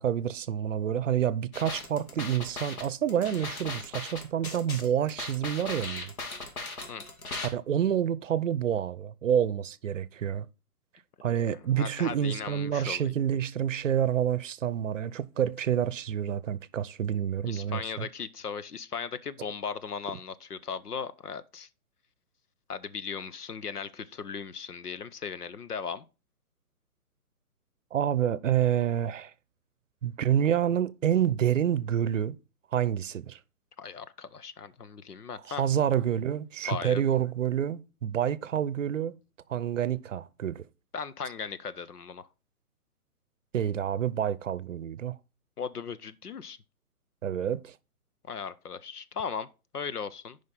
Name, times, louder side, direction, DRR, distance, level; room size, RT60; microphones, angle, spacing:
voice 1, 0.0-6.1 7.5-10.5 11.2-18.1 27.9-29.3 30.0-32.4 32.7-33.4 35.4-39.2 39.5-40.7 43.5-45.2 47.2-47.7, right 9 dB, 55° right, 0.7 m, -28 dB
sound 1, 1.5-7.5, left 3 dB, 65° left, 2.7 m, -38 dB
voice 2, 11.7-13.1 17.4-21.7 22.7-26.0 33.8-35.6 36.6-37.0 40.9-42.3 45.6-46.6 48.3-49.5 49.7-50.4, left 6 dB, 85° left, 0.9 m, -37 dB
9.4 x 5.2 x 3.9 m
figure-of-eight pair, 135°, 45 cm